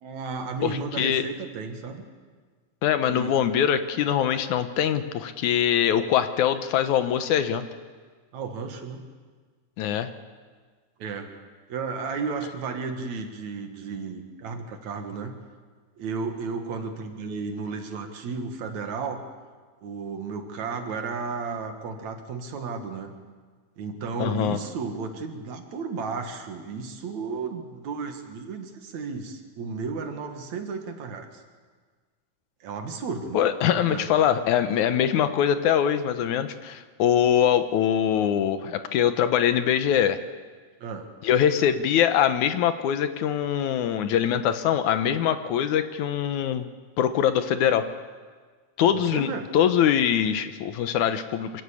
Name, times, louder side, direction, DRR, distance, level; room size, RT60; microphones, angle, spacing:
voice 1, 0.0-2.1 3.1-3.4 8.3-9.0 11.0-11.3 11.7-15.3 16.0-19.2 19.8-23.1 23.8-31.4 32.6-33.4 33.7-34.1 40.8-41.1 48.8-49.5, right 4 dB, 65° right, 5 dB, 2.9 m, -33 dB
voice 2, 0.6-1.2 2.8-7.7 9.8-10.1 24.2-24.6 33.3-40.2 41.2-46.7 47.0-47.9 48.8-51.6, left 9 dB, 75° left, 10 dB, 2.3 m, -23 dB
25.0 x 14.0 x 8.5 m, 1.5 s
omnidirectional pair, 3.5 m